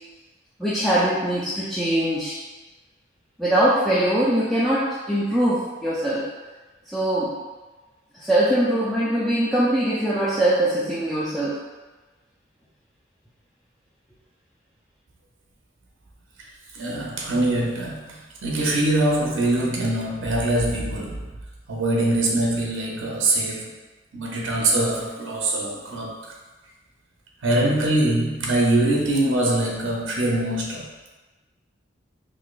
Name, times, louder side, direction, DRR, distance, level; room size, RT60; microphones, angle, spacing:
voice 1, 0.6-2.3 3.4-6.2 6.9-7.4 8.2-11.6, right 1 dB, ahead, -10 dB, 0.3 m, -22 dB
voice 2, 16.7-21.3 21.7-23.7 24.1-26.2 27.4-30.9, right 1 dB, 75° right, -2 dB, 0.5 m, -23 dB
4.0 x 2.6 x 2.3 m, 1.2 s
head